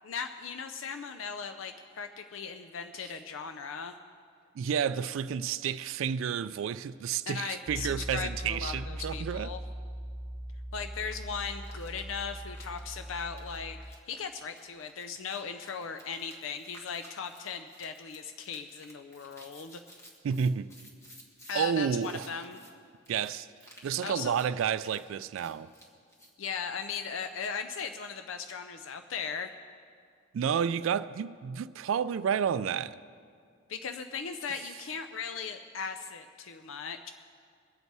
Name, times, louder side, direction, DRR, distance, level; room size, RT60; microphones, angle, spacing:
voice 1, 0.0-3.9 7.3-9.6 10.7-19.8 21.5-22.6 24.0-24.4 26.4-29.5 33.7-37.1, left 6 dB, 75° left, 0.5 m, -38 dB
voice 2, 4.6-9.5 20.2-20.7 21.5-22.3 23.1-23.5 23.8-25.7 30.3-33.0, right 7 dB, 75° right, 0.3 m, -30 dB
Piano, 7.7-14.0, equal, 10° right, 0.5 m, -40 dB
shaving cream, 11.0-11.2 11.6-21.7 22.0-22.7 23.1-23.3 23.6-23.9 24.2-24.5 24.8-26.3, equal, 15° left, 1.8 m, -55 dB
22.0 x 8.1 x 4.7 m
head